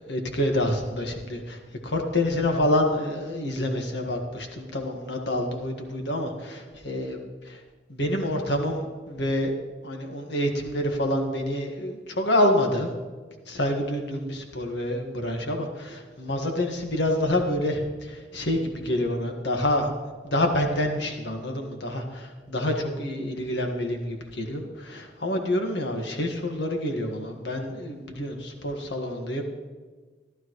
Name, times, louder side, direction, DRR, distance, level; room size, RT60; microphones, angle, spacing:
voice 1, 0.1-7.6 7.9-9.5 9.8-12.9 13.5-19.9 20.2-29.4, left 1 dB, 75° left, 3 dB, 1.6 m, -27 dB
14.5 x 12.5 x 3.1 m, 1.4 s
head